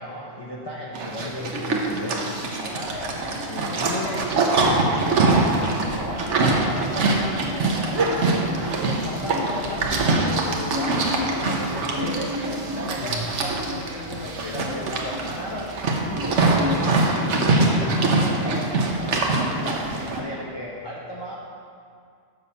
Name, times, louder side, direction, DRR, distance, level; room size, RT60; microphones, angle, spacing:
voice 1, 0.0-21.4, left 1 dB, 25° left, -4 dB, 0.7 m, -35 dB
Livestock farm animals working animals, 0.9-20.2, right 3 dB, 70° right, 1.2 m, -23 dB
sound 1, 5.2-16.7, left 1 dB, 20° right, 0.9 m, -36 dB
6.9 x 5.5 x 6.8 m, 2.3 s
omnidirectional pair, 1.3 m